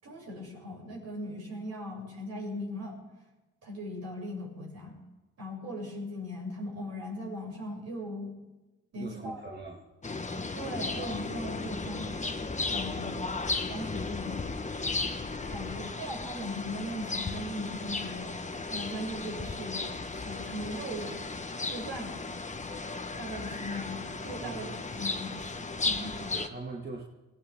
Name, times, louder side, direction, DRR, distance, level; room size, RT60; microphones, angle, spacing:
voice 1, 0.0-3.0 3.6-4.9 5.4-8.3 8.9-9.4 10.5-12.1 12.7-14.5 15.5-21.2 21.7-22.2 23.2-24.0 24.2-26.3, equal, 60° right, -3 dB, 7.5 m, -39 dB
voice 2, 8.9-9.9 24.4-24.8 26.1-27.0, right 3 dB, 35° right, -1 dB, 2.1 m, -41 dB
sound 1, 10.0-26.5, left 3 dB, 25° left, 1.3 m, -35 dB
21.0 x 16.0 x 3.7 m, 1.1 s
supercardioid pair, 55°, 29 cm